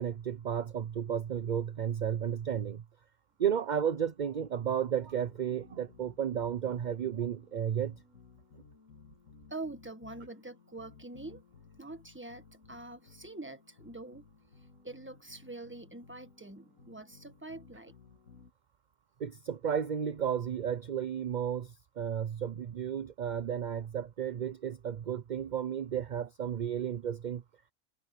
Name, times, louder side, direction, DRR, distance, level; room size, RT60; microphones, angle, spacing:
voice 1, 0.0-2.8 3.4-7.9 19.2-21.7 22.0-27.4, right 8 dB, 45° right, 0.6 m, -33 dB
sound 1, 4.5-18.5, left 5 dB, 75° left, 2.6 m, -58 dB
voice 2, 9.5-11.4 11.8-14.2 14.8-17.9, right 2 dB, 10° right, 1.5 m, -45 dB
omnidirectional pair, 1.4 m